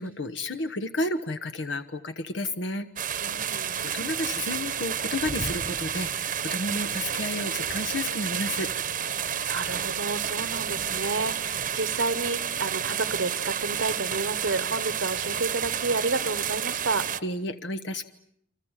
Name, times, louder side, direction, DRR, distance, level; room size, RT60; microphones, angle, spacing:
voice 1, 0.0-2.9 3.8-8.7 17.2-18.0, left 2 dB, 70° left, 10 dB, 1.2 m, -31 dB
sound 1, 3.0-17.2, right 8 dB, 45° right, 1.1 m, -30 dB
voice 2, 3.2-3.8 9.4-17.1, right 3 dB, 80° right, 13 dB, 1.3 m, -30 dB
29.5 x 26.0 x 7.5 m, 0.72 s
head